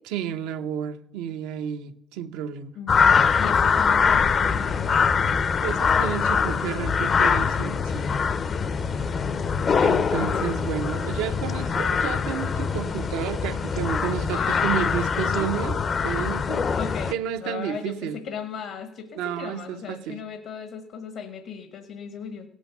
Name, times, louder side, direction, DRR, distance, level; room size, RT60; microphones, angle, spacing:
voice 1, 0.1-2.7 5.6-8.1 9.8-16.7 17.1-18.2 19.2-20.2, right 9 dB, 85° right, 0.7 m, -31 dB
voice 2, 2.7-5.1 8.9-9.8 10.2-10.5 14.3-14.7 15.2-15.5 16.8-17.1 17.4-22.5, left 7 dB, 75° left, 1.1 m, -37 dB
sound 1, 2.9-17.1, left 6 dB, 45° left, 0.5 m, -23 dB
17.0 x 6.2 x 6.9 m
supercardioid pair, 75°, 0 cm